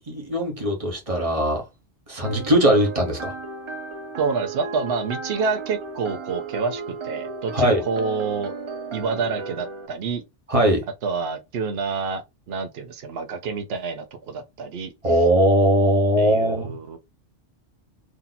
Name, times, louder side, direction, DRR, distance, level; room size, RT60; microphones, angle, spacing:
voice 1, 0.1-1.6 2.1-3.3 7.5-7.8 10.5-10.8 15.0-16.7, right 1 dB, 30° right, 1.2 m, -20 dB
sound 1, 2.2-9.9, right 4 dB, 45° right, 0.4 m, -35 dB
voice 2, 4.2-8.5 8.9-10.2 11.0-14.9 16.2-17.0, right 5 dB, 65° right, 0.9 m, -28 dB
2.9 x 2.8 x 3.9 m
omnidirectional pair, 1.2 m